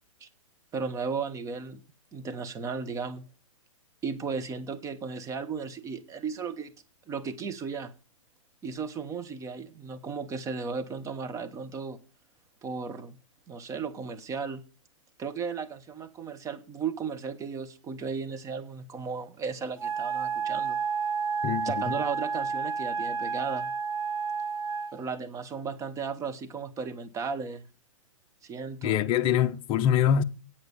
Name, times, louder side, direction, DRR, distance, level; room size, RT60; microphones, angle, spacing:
voice 1, 0.7-1.8 2.1-3.2 4.0-6.7 7.1-7.9 8.6-12.0 12.6-13.2 13.5-14.6 15.2-20.8 21.6-23.7 24.9-27.6 28.4-29.0, right 5 dB, 20° right, 1.2 m, -35 dB
Wind instrument woodwind instrument, 19.8-25.0, right 5 dB, 80° right, 1.4 m, -30 dB
voice 2, 28.8-30.2, left 9 dB, 30° left, 0.7 m, -24 dB
8.7 x 8.0 x 6.8 m
hypercardioid pair, 120°, 17 cm